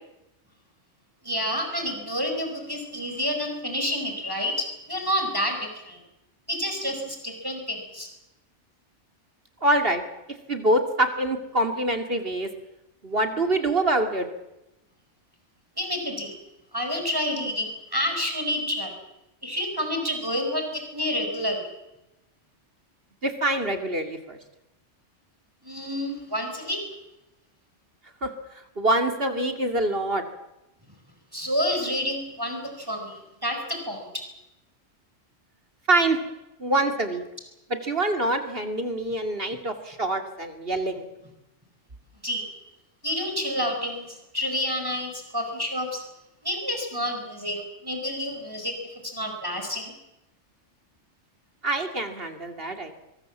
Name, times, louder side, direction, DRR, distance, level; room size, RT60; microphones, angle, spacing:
voice 1, 1.2-6.0 6.5-8.1 15.8-16.3 16.7-18.9 19.4-21.6 25.6-26.8 31.3-34.1 42.2-42.4 43.0-46.0 46.4-48.7 49.0-49.9, equal, 15° right, 3 dB, 5.0 m, -29 dB
voice 2, 9.6-10.0 10.5-12.5 13.0-14.3 23.2-24.4 28.2-30.2 35.9-36.2 36.6-37.2 37.8-41.1 51.6-52.9, right 1 dB, 50° right, 6 dB, 2.7 m, -25 dB
24.0 x 21.5 x 7.4 m, 0.92 s
omnidirectional pair, 1.3 m